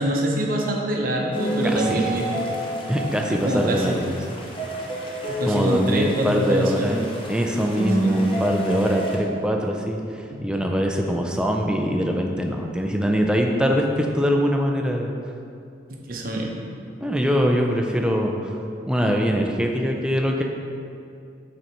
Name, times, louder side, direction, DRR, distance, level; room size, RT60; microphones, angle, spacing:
voice 1, 0.0-2.5 3.3-4.0 5.4-7.0 8.1-8.2 10.3-10.4 15.9-16.5, right 1 dB, 50° right, 0 dB, 0.8 m, -25 dB
sound 1, 1.3-9.2, right 1 dB, 30° left, 0.8 m, -29 dB
voice 2, 1.7-2.1 2.9-4.2 5.5-10.0 10.4-15.1 17.0-18.5 18.8-20.4, equal, 5° right, 1 dB, 0.4 m, -23 dB
6.3 x 4.2 x 4.4 m, 2.5 s
head